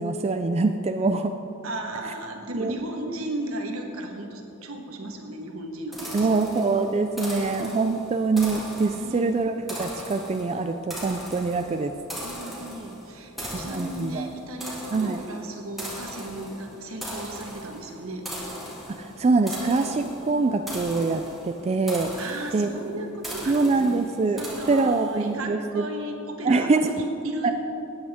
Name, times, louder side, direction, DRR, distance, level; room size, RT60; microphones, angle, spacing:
voice 1, 0.0-1.4 2.6-2.7 6.1-11.9 13.5-14.3 14.9-15.2 18.9-22.1 22.5-22.7 23.5-24.4 24.7-25.9 26.4-26.9 27.4-27.5, right 3 dB, 30° right, 6 dB, 0.3 m, -24 dB
voice 2, 1.6-6.3 9.0-9.2 12.2-18.3 22.1-23.6 23.8-27.5, right 1 dB, 75° right, 3 dB, 1.4 m, -35 dB
sound 1, 5.9-25.3, equal, ahead, 2.2 m, -39 dB
17.0 x 8.8 x 3.6 m, 2.9 s
head